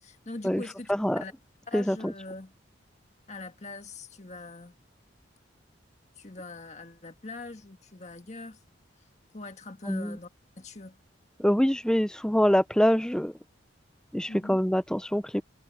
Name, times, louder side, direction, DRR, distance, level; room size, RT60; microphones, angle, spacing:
voice 1, 0.0-0.9 1.2-1.3 1.7-2.5 3.3-4.7 6.2-8.6 9.3-10.3 10.6-11.0 14.3-14.6, left 2 dB, 35° left, 1.5 m, -42 dB
voice 2, 0.9-1.2 1.7-2.1 9.9-10.2 11.4-13.3 14.1-15.4, equal, 5° left, 0.5 m, -25 dB
head